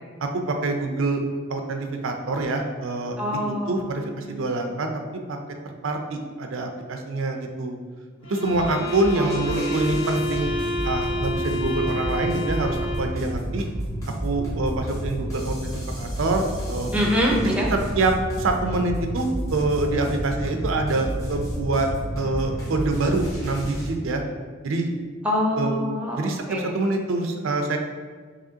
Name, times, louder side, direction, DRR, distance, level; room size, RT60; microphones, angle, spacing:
voice 1, 0.2-1.2 1.5-3.2 3.5-5.4 5.6-7.8 8.2-10.5 10.8-13.7 14.2-16.9 17.4-21.9 22.2-24.2 24.6-24.9 25.6-25.8 26.2-27.8, right 2 dB, 85° right, 4 dB, 0.5 m, -26 dB
voice 2, 3.2-4.4 9.2-9.9 16.9-17.7 25.2-26.7, equal, 5° right, -2 dB, 0.6 m, -26 dB
sound 1, 8.2-13.2, equal, 70° left, 1.1 m, -29 dB
sound 2, 8.4-23.9, equal, 15° left, 1.0 m, -31 dB
4.9 x 3.0 x 2.8 m, 1.6 s
head